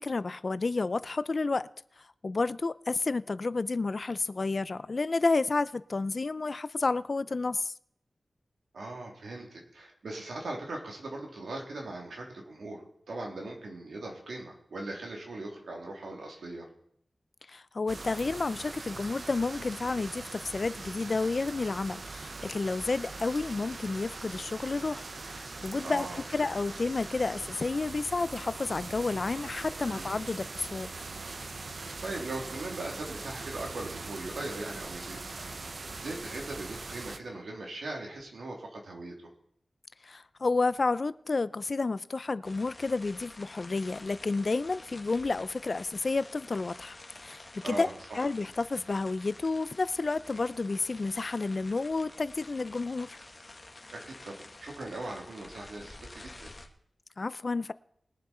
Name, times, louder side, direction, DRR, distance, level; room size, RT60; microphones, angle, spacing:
voice 1, 0.0-1.7 2.2-7.7 17.5-30.9 40.0-47.9 48.1-53.2 57.2-57.7, left 3 dB, 55° left, 0.5 m, -31 dB
voice 2, 8.7-16.7 25.8-26.5 29.8-30.1 32.0-35.2 35.9-39.1 47.6-48.2 53.9-56.5, right 2 dB, 90° right, 3.1 m, -40 dB
sound 1, 17.9-37.2, right 3 dB, 65° right, 0.9 m, -41 dB
sound 2, 42.4-56.7, left 2 dB, 35° left, 1.8 m, -49 dB
21.5 x 7.5 x 4.3 m
wide cardioid pair, 60°, 0 cm